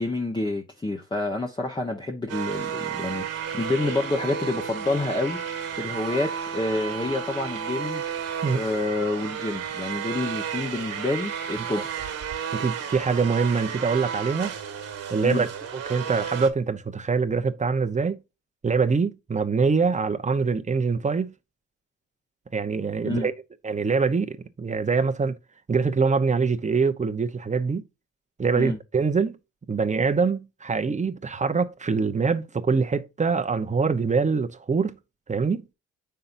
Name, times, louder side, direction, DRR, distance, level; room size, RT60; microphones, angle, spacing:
voice 1, 0.0-8.0 8.5-11.9 15.2-15.4 23.0-23.3 28.5-28.8, left 2 dB, 15° left, 1.2 m, -28 dB
sound 1, 2.3-16.5, right 8 dB, 55° right, 1.7 m, -32 dB
voice 2, 12.5-14.5 15.1-15.5 15.9-18.2 18.6-21.4 22.5-23.3 23.6-25.4 25.7-27.8 28.4-29.4 29.7-35.0 35.3-35.6, right 5 dB, 25° right, 0.9 m, -24 dB
6.6 x 5.7 x 2.6 m
cardioid pair, 90°, 30 cm